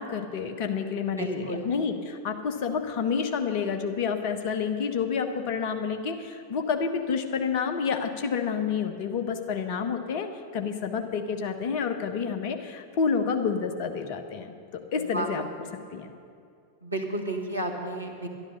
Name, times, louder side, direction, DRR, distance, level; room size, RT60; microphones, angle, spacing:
voice 1, 0.0-15.4 15.9-16.1, left 6 dB, 45° left, 6 dB, 1.2 m, -29 dB
voice 2, 0.9-1.7 15.0-15.3 16.8-18.3, right 1 dB, 85° right, 1 dB, 1.7 m, -32 dB
11.5 x 11.5 x 6.8 m, 2.5 s
figure-of-eight pair, 90°, 0 cm